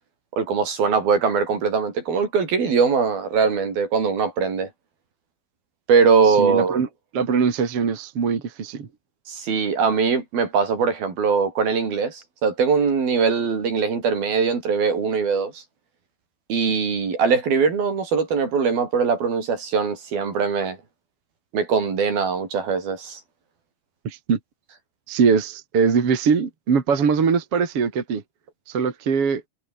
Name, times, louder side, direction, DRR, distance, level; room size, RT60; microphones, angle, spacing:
voice 1, 0.4-4.7 5.9-6.8 9.3-15.6 16.5-20.8 21.5-23.2, right 5 dB, 50° right, 6.3 m, -21 dB
voice 2, 6.3-6.9 7.1-8.9 24.0-24.4 25.1-28.2 28.7-29.4, right 6 dB, 35° right, 2.9 m, -22 dB
omnidirectional pair, 5.5 m